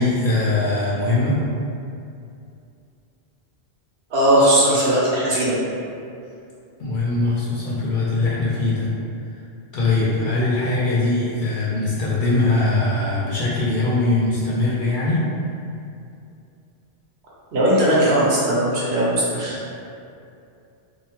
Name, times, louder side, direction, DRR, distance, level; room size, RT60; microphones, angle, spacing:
voice 1, 0.0-1.4 6.8-8.9 9.7-15.2, left 2 dB, 60° left, -8 dB, 0.6 m, -21 dB
voice 2, 4.1-5.5 17.5-19.6, right 1 dB, 70° right, -7 dB, 0.9 m, -18 dB
2.7 x 2.0 x 2.8 m, 2.5 s
omnidirectional pair, 1.1 m